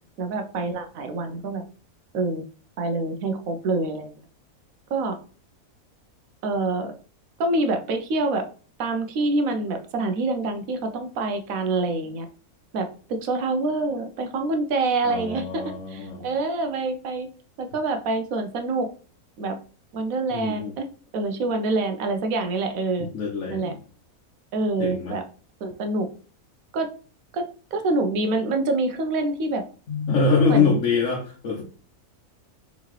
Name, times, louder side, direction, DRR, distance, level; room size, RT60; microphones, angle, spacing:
voice 1, 0.2-1.6 2.1-2.4 2.8-4.1 4.9-5.1 6.4-6.9 7.4-8.5 8.8-12.3 12.7-15.6 15.9-17.3 17.6-18.9 19.4-19.6 19.9-20.8 21.1-23.1 23.5-23.7 24.5-25.2 25.6-26.1 26.7-26.9 27.3-29.6 30.5-30.8, right 3 dB, 70° right, 6 dB, 1.1 m, -26 dB
voice 2, 15.0-16.3 20.3-20.7 23.0-23.8 24.8-25.2 29.9-31.6, left 5 dB, 60° left, -3 dB, 1.2 m, -24 dB
4.0 x 3.7 x 3.1 m, 0.39 s
omnidirectional pair, 1.5 m